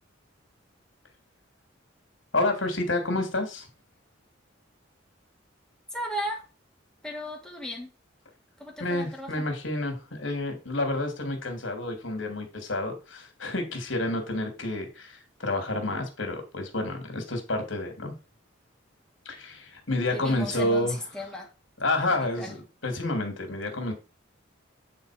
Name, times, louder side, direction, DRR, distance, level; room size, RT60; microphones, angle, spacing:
voice 1, 2.3-3.7 8.8-18.1 19.2-21.0 21.8-23.9, left 2 dB, 75° left, 5 dB, 2.9 m, -29 dB
voice 2, 5.9-6.4 7.0-7.9 8.6-9.4 20.1-21.5 22.1-22.5, equal, 5° left, 0 dB, 2.4 m, -35 dB
9.4 x 4.2 x 5.1 m, 0.31 s
head